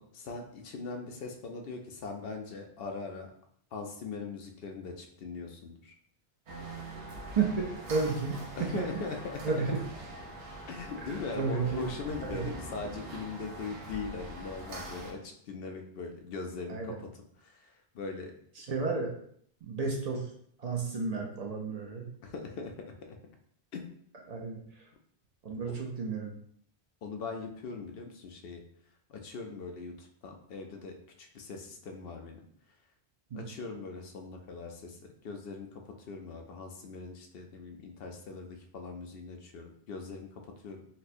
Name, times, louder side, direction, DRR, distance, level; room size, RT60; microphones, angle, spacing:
voice 1, 0.0-3.3 3.7-6.0 8.6-9.6 10.7-17.1 17.4-18.3 19.8-19.9 22.2-23.2 23.7-23.8 25.7-25.8 27.0-28.6 29.1-32.8 33.3-40.9, left 4 dB, 65° left, 3 dB, 0.7 m, -41 dB
sound 1, 6.5-15.1, right 1 dB, 85° right, 1.0 m, -43 dB
voice 2, 7.4-8.9 9.4-9.7 11.0-11.1 11.4-11.9 12.2-12.4 16.7-17.0 18.6-19.1 19.6-20.3 20.6-22.1 24.3-24.6 25.4-26.3 33.3-33.4, right 4 dB, 50° right, 0 dB, 0.5 m, -32 dB
4.1 x 2.1 x 2.6 m, 0.64 s
omnidirectional pair, 1.1 m